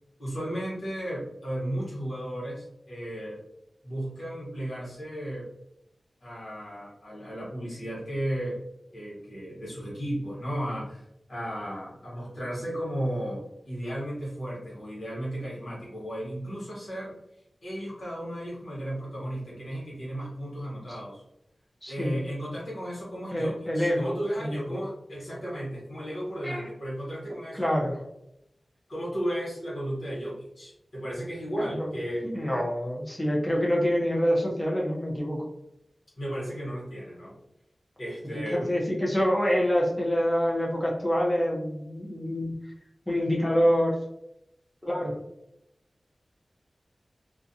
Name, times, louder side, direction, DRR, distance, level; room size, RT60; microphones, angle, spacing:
voice 1, 0.2-3.4 3.8-5.5 6.2-8.6 8.9-11.0 11.3-17.2 17.6-21.2 21.9-27.7 28.9-32.3 36.2-37.4 38.0-38.7, equal, 85° left, -6 dB, 1.2 m, -34 dB
voice 2, 21.8-22.2 23.3-24.1 24.4-24.8 26.4-26.7 27.5-28.0 31.6-31.9 32.2-35.5 38.5-42.5 43.1-44.0 44.8-45.2, equal, 10° left, -3 dB, 0.6 m, -26 dB
2.4 x 2.2 x 2.6 m, 0.82 s
wide cardioid pair, 95°, 0 cm